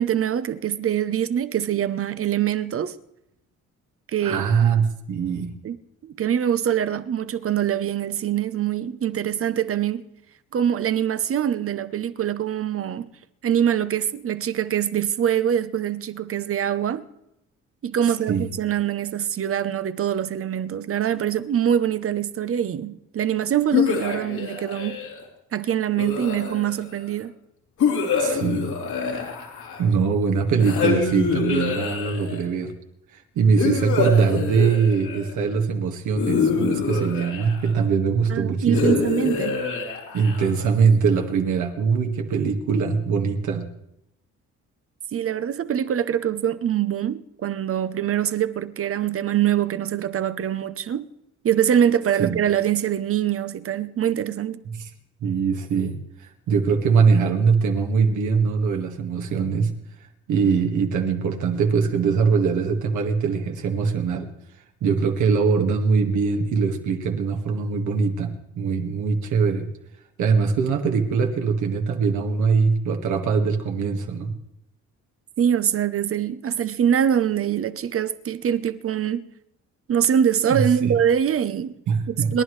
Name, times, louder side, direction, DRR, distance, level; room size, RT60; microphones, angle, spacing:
voice 1, 0.0-3.0 4.1-4.5 5.6-5.8 6.0-10.0 10.5-13.1 13.4-17.0 17.8-25.0 25.5-27.3 38.3-39.6 45.1-51.1 51.4-54.6 75.4-79.3 79.9-81.7 82.1-82.4, right 9 dB, 50° right, 0.8 m, -24 dB
voice 2, 4.2-5.5 18.0-18.5 28.2-28.7 29.8-32.7 33.1-39.0 40.1-43.7 52.2-52.4 54.7-54.8 55.2-59.7 60.3-64.3 64.8-69.7 70.2-74.3 80.5-80.9 81.9-82.3, right 5 dB, 75° right, 1.9 m, -22 dB
sound 1, 23.7-25.2 26.0-26.9 27.8-30.0 30.6-32.5 33.6-35.3 36.2-37.8 38.7-40.7, left 5 dB, 75° left, 3.7 m, -25 dB
29.0 x 11.0 x 3.2 m
cardioid pair, 90°, 30 cm